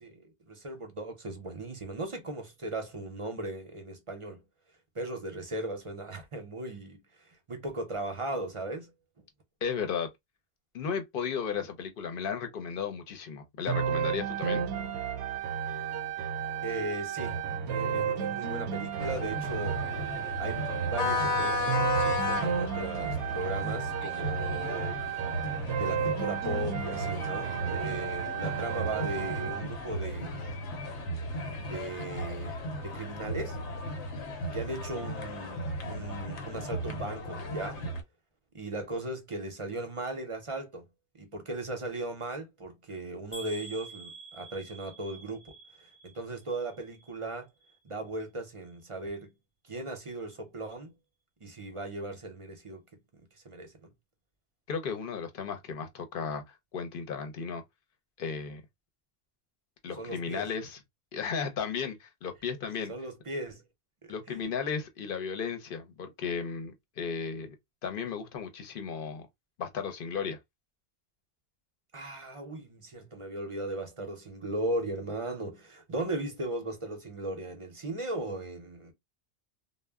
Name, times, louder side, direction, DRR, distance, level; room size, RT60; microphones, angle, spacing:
voice 1, 0.0-4.4 4.9-8.9 16.6-19.8 20.4-20.6 20.9-25.0 25.7-30.5 31.6-33.6 34.5-37.8 38.5-40.8 41.2-45.5 45.8-47.5 47.8-49.3 49.6-50.9 51.4-52.8 53.1-53.9 60.0-60.5 62.9-63.6 64.0-64.4 71.9-78.9, right 2 dB, 35° right, 0.6 m, -37 dB
voice 2, 9.6-10.1 10.7-14.6 54.7-57.6 58.2-58.6 59.8-60.8 61.1-62.9 64.1-67.6 67.8-69.3 69.6-70.4, left 6 dB, 60° left, 0.8 m, -35 dB
sound 1, 13.7-29.7, right 8 dB, 80° right, 0.8 m, -33 dB
sound 2, 19.0-38.0, left 1 dB, 90° left, 1.0 m, -35 dB
sound 3, 43.3-47.3 47.6-48.2 48.7-48.8 49.1-49.2, right 3 dB, 15° left, 0.8 m, -48 dB
2.1 x 2.1 x 3.4 m
omnidirectional pair, 1.1 m